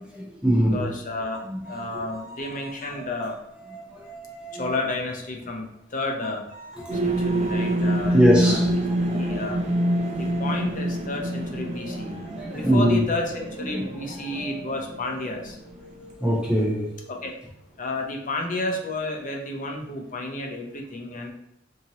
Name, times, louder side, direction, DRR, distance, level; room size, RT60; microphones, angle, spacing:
voice 1, 0.1-0.8 1.4-1.6 3.9-4.0 4.5-4.6 8.0-8.7 12.4-13.0 13.7-13.9 16.2-16.9, equal, 5° right, -4 dB, 0.7 m, -21 dB
voice 2, 0.7-3.4 4.5-5.6 5.9-6.4 7.0-8.2 8.5-8.6 9.1-9.6 10.2-12.2 12.5-15.6 17.1-17.3 17.8-21.3, left 2 dB, 45° left, 1 dB, 0.7 m, -31 dB
sound 1, 1.3-5.7 6.2-17.6, right 3 dB, 80° left, 1.0 m, -44 dB
sound 2, 6.9-16.1, right 1 dB, 35° right, 0.4 m, -27 dB
4.3 x 2.8 x 2.9 m, 0.77 s
head